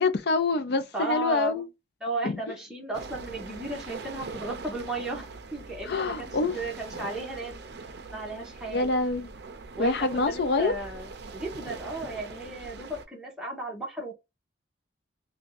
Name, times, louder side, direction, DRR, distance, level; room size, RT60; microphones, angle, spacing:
voice 1, 0.0-1.6 2.2-2.4 5.8-6.6 8.7-9.3 9.8-10.7, left 3 dB, 60° left, 0.4 m, -26 dB
voice 2, 0.9-1.7 2.0-7.5 8.1-8.9 9.8-14.1, right 2 dB, 5° right, 0.9 m, -35 dB
sound 1, 2.9-13.0, right 4 dB, 60° right, 0.5 m, -42 dB
2.6 x 2.3 x 3.9 m
head